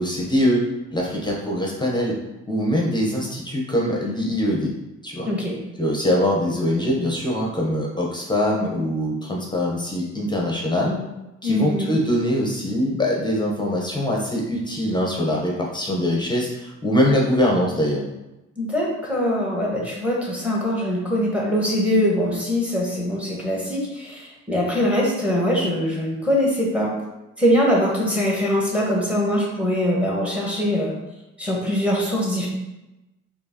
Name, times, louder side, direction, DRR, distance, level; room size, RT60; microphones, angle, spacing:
voice 1, 0.0-2.2 2.5-4.7 5.0-5.3 5.8-11.0 11.4-18.0, equal, 15° left, -2 dB, 0.8 m, -23 dB
voice 2, 5.2-5.6 11.4-12.0 18.6-26.9 27.4-30.9 31.4-32.5, equal, 5° right, -3 dB, 1.3 m, -22 dB
4.4 x 2.8 x 2.8 m, 0.99 s
cardioid pair, 90°, 30 cm